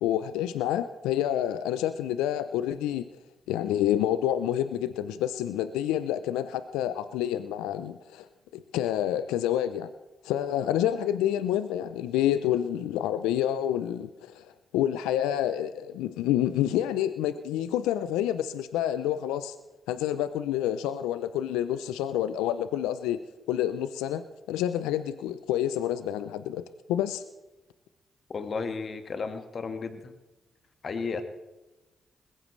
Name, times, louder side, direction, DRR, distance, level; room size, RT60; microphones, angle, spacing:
voice 1, 0.0-3.1 3.5-8.3 8.5-9.9 10.2-14.5 14.7-19.6 19.9-23.2 23.5-27.2, left 11 dB, 85° left, 12 dB, 0.5 m, -28 dB
voice 2, 28.3-30.1 30.8-31.3, left 4 dB, 55° left, 8 dB, 1.6 m, -33 dB
20.5 x 16.0 x 3.2 m, 1.1 s
hypercardioid pair, 40°, 0 cm